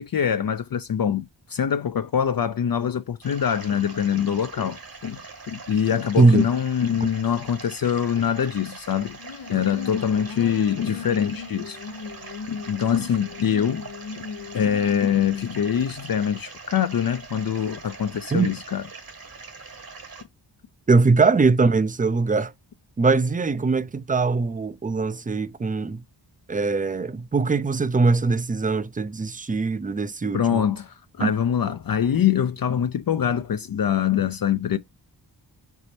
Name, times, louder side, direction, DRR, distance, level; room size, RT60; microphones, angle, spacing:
voice 1, 0.0-9.2 9.5-11.8 12.5-13.9 14.5-18.9 30.3-34.8, left 8 dB, 50° left, 0.5 m, -24 dB
sound 1, 3.2-20.2, right 4 dB, 50° right, 1.5 m, -42 dB
sound 2, 9.2-15.6, left 6 dB, 90° left, 0.8 m, -37 dB
voice 2, 20.9-22.5 23.0-26.0 26.5-30.6 31.2-31.3, right 4 dB, 20° right, 0.4 m, -21 dB
4.8 x 4.0 x 2.7 m
wide cardioid pair, 75°, 45 cm